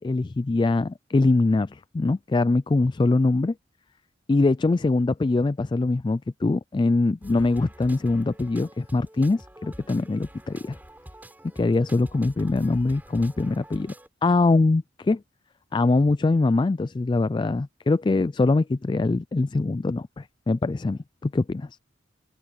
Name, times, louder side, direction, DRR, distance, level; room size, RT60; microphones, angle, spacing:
voice 1, 0.0-3.5 4.3-10.8 11.6-13.9 14.2-15.2 15.7-21.7, left 3 dB, 25° left, 0.3 m, -23 dB
sound 1, 7.2-14.1, equal, 10° right, 6.3 m, -46 dB
open air
head